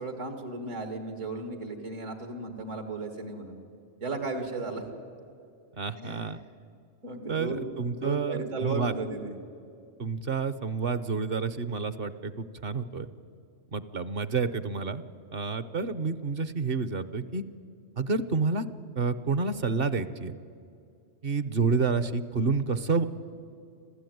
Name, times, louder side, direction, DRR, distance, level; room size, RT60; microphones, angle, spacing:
voice 1, 0.0-3.6 4.0-4.8 6.0-6.3 7.0-9.3, right 3 dB, 80° right, 6 dB, 2.5 m, -35 dB
voice 2, 5.8-6.4 7.3-8.9 10.0-13.1 13.7-15.0 15.3-17.4 18.0-18.7 19.0-20.3 21.2-23.0, right 4 dB, 50° right, 14 dB, 1.0 m, -29 dB
25.5 x 15.5 x 9.3 m, 2.5 s
omnidirectional pair, 1.3 m